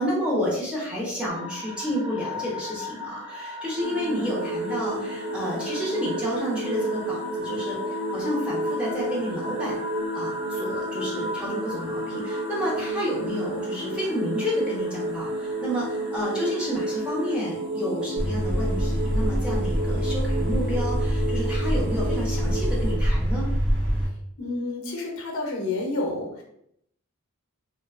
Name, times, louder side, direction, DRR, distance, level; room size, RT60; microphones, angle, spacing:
voice 1, 0.0-7.8 8.1-9.8 10.1-23.5, equal, 5° right, -6 dB, 0.6 m, -30 dB
sound 1, 1.3-17.3, left 2 dB, 20° right, 1.2 m, -39 dB
sound 2, 3.8-22.9, right 1 dB, 75° right, 0.9 m, -31 dB
sound 3, 18.2-24.1, equal, 40° right, 0.8 m, -25 dB
voice 2, 24.4-26.4, left 2 dB, 70° left, 1 dB, 0.6 m, -29 dB
2.4 x 2.2 x 2.4 m, 0.73 s
head